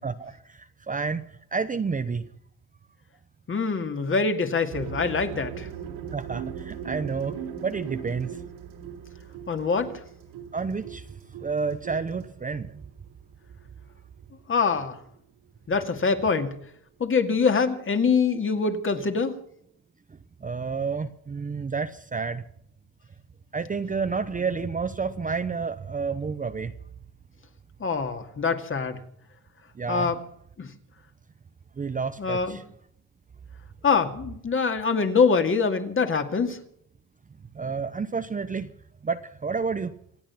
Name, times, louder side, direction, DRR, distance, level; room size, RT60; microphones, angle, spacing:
voice 1, 0.0-2.2 6.1-8.4 10.5-11.1 11.4-12.7 20.4-22.4 23.5-26.7 29.8-30.1 31.8-32.6 37.5-38.7 39.0-39.9, right 5 dB, 20° right, 9 dB, 0.8 m, -30 dB
voice 2, 3.5-5.7 9.5-10.0 14.5-15.0 15.7-16.5 17.0-19.4 27.8-29.0 29.9-30.2 30.6-30.7 32.2-32.6 33.8-36.6, left 5 dB, 30° left, 6 dB, 2.2 m, -24 dB
sound 1, 4.7-13.6, right 8 dB, 75° right, 3.4 m, -39 dB
27.0 x 9.0 x 5.9 m, 0.68 s
cardioid pair, 120°, 41 cm